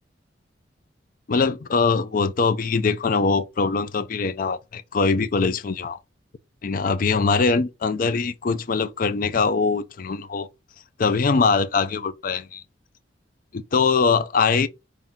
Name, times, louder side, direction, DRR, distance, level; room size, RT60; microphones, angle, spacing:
voice 1, 1.3-6.0 6.6-10.5 11.0-12.6 13.5-14.7, left 4 dB, 50° left, 0.4 m, -22 dB
5.7 x 2.6 x 3.6 m
head